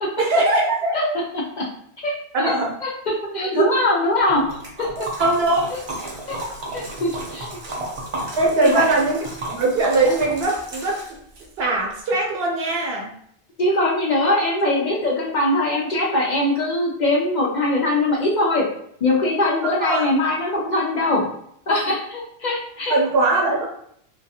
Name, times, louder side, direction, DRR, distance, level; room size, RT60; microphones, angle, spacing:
voice 1, 0.2-1.1 2.3-2.7 3.3-3.7 5.2-5.7 8.4-11.0 11.6-13.1 19.6-20.1 22.9-23.6, right 2 dB, 75° right, -2 dB, 0.9 m, -21 dB
voice 2, 1.3-1.7 2.0-2.5 2.8-2.9 3.3-4.4 4.8-4.9 6.3-6.4 6.7-7.5 8.6-8.8 13.6-18.7 19.0-21.3 21.7-23.0, left 2 dB, 55° left, -3 dB, 0.5 m, -21 dB
Liquid, 4.3-11.5, right 1 dB, 40° right, 0.5 m, -32 dB
2.3 x 2.3 x 2.7 m, 0.68 s
omnidirectional pair, 1.1 m